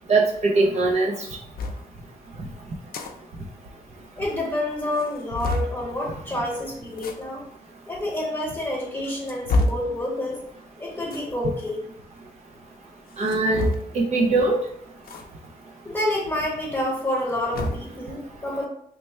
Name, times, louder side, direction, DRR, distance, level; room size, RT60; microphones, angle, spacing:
voice 1, 0.1-1.1 13.2-14.6, right 3 dB, 45° right, -1 dB, 0.4 m, -21 dB
sound 1, 1.6-1.8 2.7-3.1 3.4-3.5 3.8-3.9 4.4-4.5 4.9-5.8 6.9-7.2 8.0-8.1 8.8-9.9 11.0-11.3 13.1-14.0 15.0-15.2 15.6-15.7 17.0-17.9, left 2 dB, 75° left, 0.5 m, -27 dB
voice 2, 4.2-7.4 7.9-10.4 10.8-11.8 15.8-18.7, left 1 dB, 10° left, -4 dB, 1.1 m, -28 dB
3.2 x 2.2 x 4.1 m, 0.69 s
wide cardioid pair, 170°, 16 cm